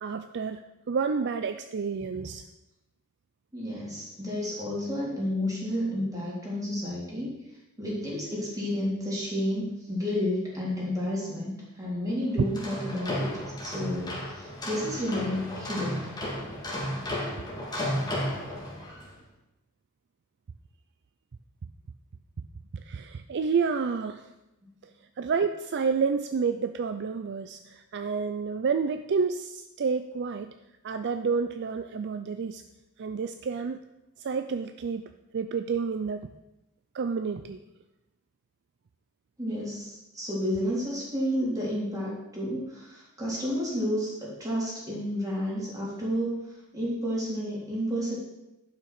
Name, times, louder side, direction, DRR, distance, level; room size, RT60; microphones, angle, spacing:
voice 1, 0.0-0.6 0.9-2.4 22.4-22.5 22.7-24.3 25.2-30.5 30.8-32.6 33.0-33.8 34.2-36.3 36.9-37.6, right 5 dB, 50° right, 9 dB, 0.4 m, -29 dB
voice 2, 3.5-7.3 7.8-16.1 24.6-24.7 39.4-48.2, equal, 15° right, -6 dB, 3.6 m, -31 dB
sound 1, 12.4-19.1, left 1 dB, 20° left, 2.3 m, -33 dB
11.0 x 5.8 x 6.0 m, 0.95 s
head